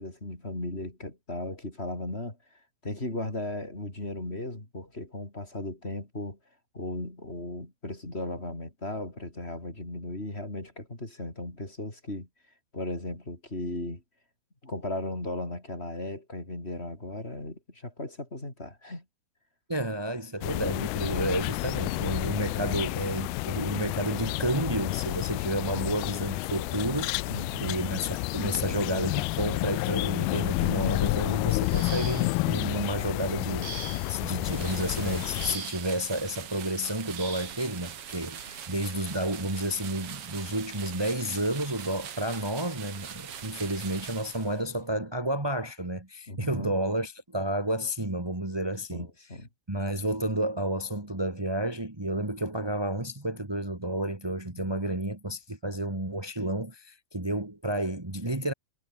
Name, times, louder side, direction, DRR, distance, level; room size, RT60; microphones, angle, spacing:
voice 1, 0.0-2.4 2.8-6.4 6.7-12.3 12.7-14.0 14.6-19.0 27.3-27.8 38.5-38.6 46.3-46.7 48.9-49.5 54.6-54.7, left 1 dB, 15° left, 5.2 m, -36 dB
voice 2, 19.7-33.7 34.1-49.1 49.7-58.5, right 1 dB, 15° right, 0.9 m, -31 dB
sound 1, 20.4-35.6, left 23 dB, 85° left, 2.4 m, -30 dB
sound 2, 31.6-32.5 33.6-34.3 35.4-36.0 37.2-37.6 38.8-39.0 39.5-39.7, right 5 dB, 75° right, 7.6 m, -41 dB
sound 3, 34.4-44.8, right 9 dB, 50° right, 2.1 m, -42 dB
omnidirectional pair, 4.5 m